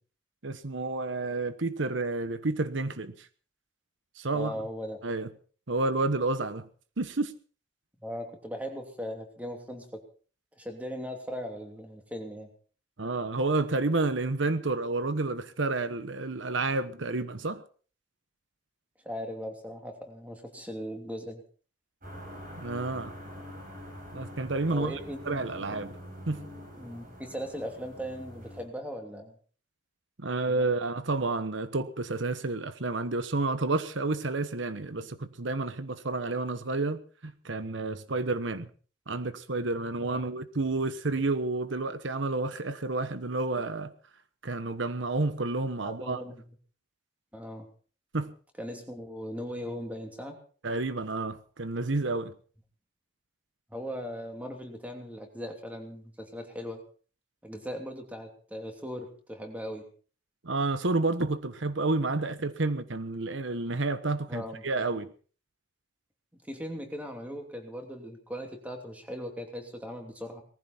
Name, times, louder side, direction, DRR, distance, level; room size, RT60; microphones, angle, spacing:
voice 1, 0.4-3.3 4.2-4.5 5.0-5.3 5.7-6.7 7.0-7.3 13.0-17.6 22.6-23.1 24.1-25.0 25.3-26.0 26.3-26.4 30.2-38.7 39.1-43.9 44.4-46.2 48.1-48.3 50.6-52.3 60.4-65.1, right 3 dB, 85° right, 1.1 m, -30 dB
voice 2, 4.3-5.0 8.0-9.9 10.6-12.5 19.0-21.4 24.7-25.9 26.8-29.3 30.5-30.6 40.0-40.3 45.8-46.4 47.3-47.7 48.6-50.4 53.7-56.8 57.4-59.9 64.3-64.9 66.4-70.4, equal, 10° right, 2.9 m, -39 dB
sound 1, 22.0-28.6, equal, 45° right, 7.8 m, -45 dB
19.0 x 15.0 x 4.4 m
head